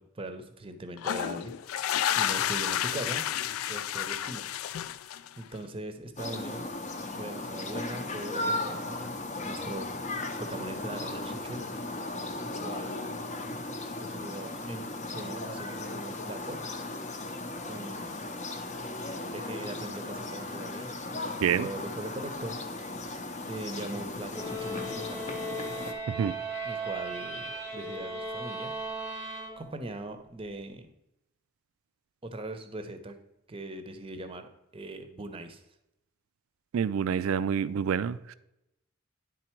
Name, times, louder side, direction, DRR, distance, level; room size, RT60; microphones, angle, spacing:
voice 1, 0.0-1.8 2.1-3.2 3.7-4.4 4.8-6.7 7.2-9.9 10.4-11.6 12.4-13.2 14.0-16.6 17.7-18.2 19.3-22.6 23.5-25.4 26.6-28.7 29.1-29.3 29.6-30.9 32.2-33.2 33.5-35.6, right 2 dB, 25° right, 8 dB, 0.6 m, -40 dB
sound 1, 1.0-5.5, left 11 dB, 80° left, 0.3 m, -31 dB
sound 2, 6.2-25.9, left 2 dB, 35° left, 0.6 m, -36 dB
sound 3, 24.3-30.0, right 2 dB, 10° left, 1.0 m, -37 dB
voice 2, 36.7-38.3, right 7 dB, 80° right, 16 dB, 0.3 m, -27 dB
9.9 x 3.9 x 4.4 m, 0.88 s
head